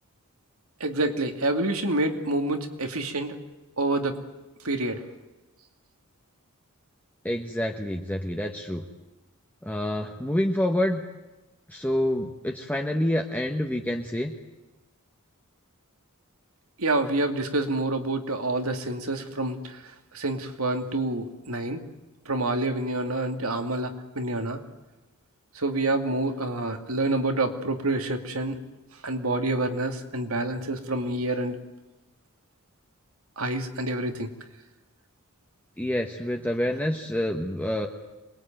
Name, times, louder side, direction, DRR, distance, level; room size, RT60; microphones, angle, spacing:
voice 1, 0.8-3.4 3.8-4.2 4.6-5.0 16.8-19.6 20.1-21.8 22.3-24.6 25.6-28.6 29.0-31.6 33.4-34.3, right 2 dB, 70° right, 6 dB, 2.5 m, -27 dB
voice 2, 7.2-8.8 9.6-11.0 11.7-14.3 35.8-37.9, left 1 dB, 10° left, 2 dB, 1.3 m, -27 dB
26.5 x 21.5 x 9.1 m, 1.1 s
head